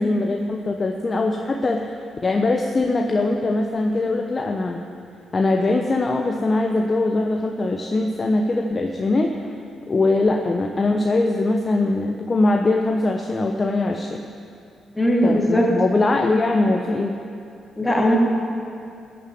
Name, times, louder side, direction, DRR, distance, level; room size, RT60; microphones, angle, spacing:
voice 1, 0.0-4.8 5.3-9.5 9.9-14.2 15.2-17.2, left 2 dB, 35° left, 3 dB, 0.9 m, -22 dB
voice 2, 15.0-15.6 17.8-18.2, equal, 15° left, -1 dB, 3.1 m, -18 dB
14.0 x 6.6 x 9.3 m, 2.5 s
hypercardioid pair, 45°, 0 cm